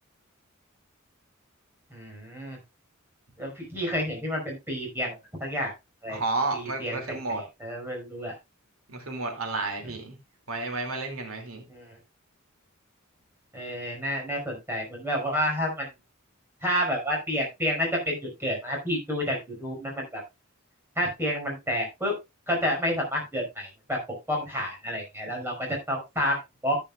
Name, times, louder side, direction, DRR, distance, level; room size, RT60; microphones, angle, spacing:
voice 1, 1.9-2.6 3.4-5.7 6.0-6.2 6.5-8.3 11.7-11.9 13.5-15.9 16.6-20.2 21.0-22.1 22.5-24.0 24.3-26.8, equal, 10° right, 5.3 m, -30 dB
voice 2, 6.1-7.4 8.9-10.2 10.5-11.6, right 3 dB, 80° right, 2.6 m, -31 dB
14.0 x 9.2 x 2.4 m
head